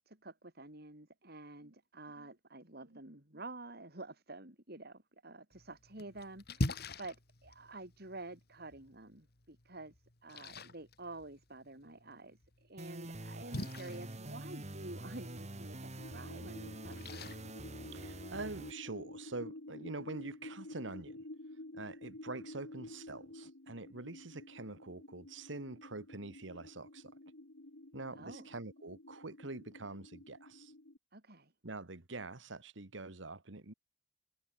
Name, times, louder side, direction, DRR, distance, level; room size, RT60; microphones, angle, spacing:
voice 1, 0.0-9.9 10.2-17.3 28.1-28.5 31.1-31.5, right 2 dB, 55° right, 5.1 m, -49 dB
Splash splatter, 5.5-18.5, left 1 dB, 55° left, 2.7 m, -45 dB
sound 1, 12.8-18.7, right 1 dB, 35° right, 2.4 m, -46 dB
sound 2, 16.0-31.0, left 1 dB, 75° left, 2.1 m, -51 dB
voice 2, 17.9-21.2 21.7-27.1 27.9-30.7 31.6-33.7, right 2 dB, 75° right, 1.8 m, -45 dB
head